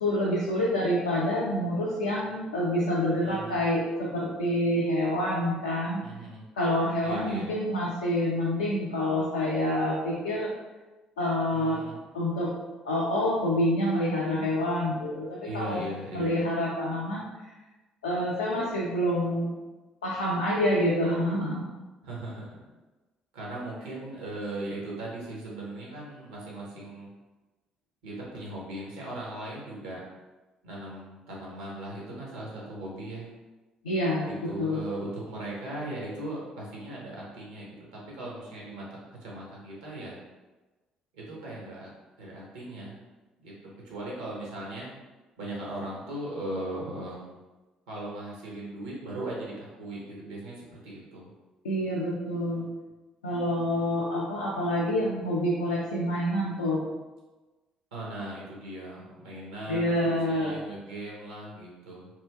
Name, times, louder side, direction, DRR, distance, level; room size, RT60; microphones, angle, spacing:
voice 1, 0.0-6.0 6.6-10.5 11.2-11.8 12.1-12.5 12.8-15.8 16.1-17.3 18.0-19.5 20.0-21.6 33.8-34.3 34.6-34.8 51.6-52.6 53.2-56.8 59.7-60.6, left 1 dB, 80° left, -6 dB, 0.4 m, -27 dB
voice 2, 3.2-3.6 6.0-6.5 7.0-7.5 11.5-12.0 15.4-16.3 22.0-22.6 23.3-27.1 28.0-30.0 30.6-33.3 34.2-40.2 41.1-41.9 42.2-43.0 43.4-44.9 45.4-47.4 47.9-51.3 53.3-53.9 57.9-62.1, right 1 dB, 75° right, -4 dB, 0.8 m, -38 dB
3.1 x 2.7 x 2.2 m, 1.2 s
figure-of-eight pair, 50°, 3 cm